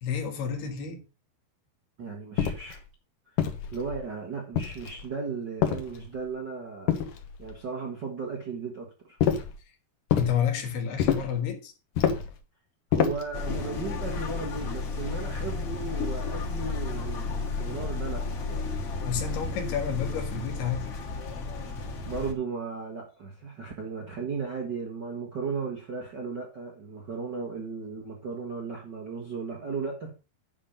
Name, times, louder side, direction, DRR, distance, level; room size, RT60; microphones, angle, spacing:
voice 1, 0.0-1.0 10.2-11.7 19.1-20.9, left 7 dB, 80° left, 3.7 m, -30 dB
voice 2, 2.0-2.8 3.7-7.0 7.4-9.2 12.9-18.8 22.0-30.1, right 5 dB, 75° right, 1.0 m, -36 dB
sound 1, 2.4-2.8 3.4-4.0 4.5-5.1 5.6-6.3 6.9-7.6 9.2-9.6 10.1-10.4 11.0-11.4 12.0-12.4 12.9-13.3, left 8 dB, 65° left, 2.5 m, -27 dB
sound 2, 13.3-22.3, left 4 dB, 50° left, 2.3 m, -33 dB
9.8 x 5.2 x 5.9 m
omnidirectional pair, 4.5 m